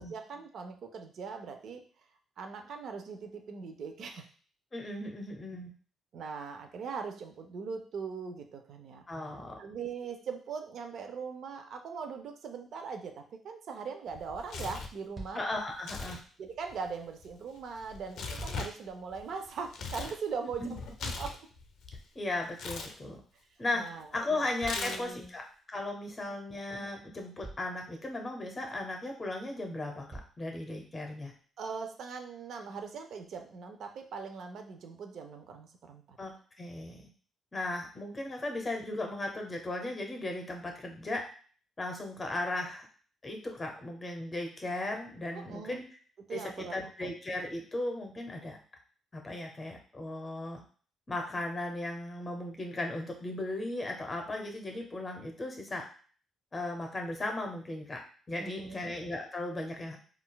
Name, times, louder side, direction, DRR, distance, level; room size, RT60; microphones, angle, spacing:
voice 1, 0.0-1.8 2.4-4.2 6.1-9.0 9.6-15.4 16.4-21.3 23.8-24.1 24.8-25.3 26.3-26.4 31.6-36.2 45.3-45.8 46.3-46.7 47.0-47.1 58.4-58.9, right 5 dB, 65° right, 5 dB, 0.4 m, -40 dB
voice 2, 4.7-5.7 9.1-9.6 15.3-16.2 20.6-20.7 22.1-23.2 23.6-23.8 24.1-25.4 25.7-31.3 36.2-37.1 37.5-41.2 41.8-42.9 43.2-45.8 46.3-48.6 49.1-50.6 51.1-55.8 56.5-58.0 58.3-60.0, left 2 dB, 30° left, 3 dB, 0.7 m, -36 dB
Tearing, 14.1-15.0 15.7-16.2 16.5-20.2 20.5-22.0 22.5-22.9 24.6-25.3, left 4 dB, 70° left, 0.4 m, -40 dB
sound 1, 15.1-15.6 18.0-18.8 20.7-21.8 24.6-25.6 26.8-26.9 27.4-27.9 29.3-29.4 30.1-30.5 31.3-31.4, right 2 dB, 35° right, 0.9 m, -47 dB
3.7 x 2.3 x 2.2 m, 0.43 s
cardioid pair, 90°, 0 cm